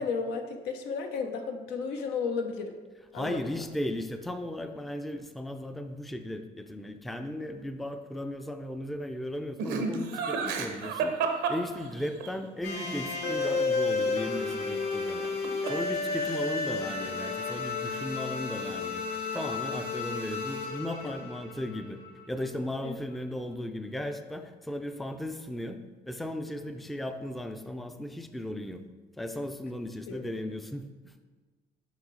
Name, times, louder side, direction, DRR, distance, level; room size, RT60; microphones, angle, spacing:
voice 1, 0.0-2.7 3.1-3.5 21.0-21.1 22.8-23.0 30.1-30.3, left 5 dB, 90° left, 5 dB, 0.6 m, -33 dB
voice 2, 3.1-19.0 19.3-22.0 22.3-25.8 26.1-28.8 29.2-31.1, left 1 dB, ahead, 7 dB, 0.3 m, -36 dB
Laughter, 9.6-12.3 15.1-15.9 16.1-16.7, right 5 dB, 85° right, 0.8 m, -31 dB
sound 1, 12.6-22.5, left 4 dB, 70° left, 1.5 m, -32 dB
6.1 x 4.7 x 3.8 m, 1.3 s
cardioid pair, 110°, 17 cm